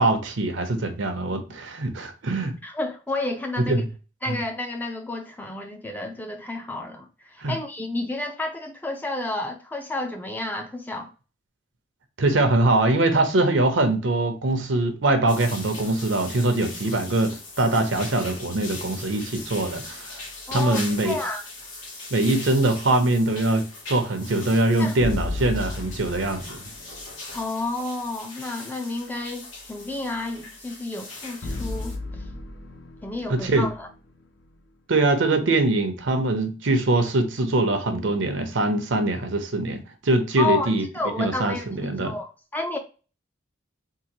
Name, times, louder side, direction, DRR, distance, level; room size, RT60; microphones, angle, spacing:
voice 1, 0.0-2.5 3.7-3.8 4.3-4.4 7.4-7.6 12.2-20.1 20.5-21.2 22.1-26.6 33.3-33.7 34.9-40.9 41.2-42.1, right 2 dB, 75° right, 0.7 m, -23 dB
voice 2, 2.6-3.8 4.2-11.1 20.5-21.5 24.8-25.0 27.3-31.9 33.0-33.9 40.4-41.7 42.0-42.8, left 2 dB, 10° left, 0.4 m, -31 dB
sound 1, 15.3-32.0, left 3 dB, 85° left, 1.6 m, -40 dB
sound 2, 25.0-27.2 31.4-34.6, left 2 dB, 60° left, 0.6 m, -34 dB
3.8 x 2.5 x 2.9 m
head